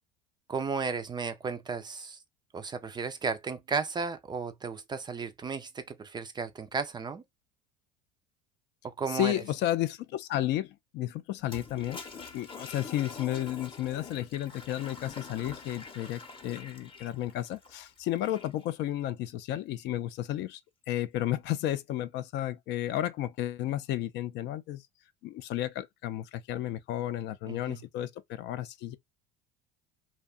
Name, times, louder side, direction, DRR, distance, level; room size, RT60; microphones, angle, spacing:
voice 1, 0.5-2.2 2.5-7.2 8.8-9.3 27.5-27.8, right 5 dB, 20° right, 0.4 m, -34 dB
voice 2, 9.1-12.0 12.3-20.6 20.9-24.8 25.2-29.0, left 13 dB, 55° left, 0.4 m, -32 dB
Toilet flush, 11.4-18.7, left 4 dB, 25° left, 0.7 m, -45 dB
2.7 x 2.2 x 2.3 m
supercardioid pair, 100°, 21 cm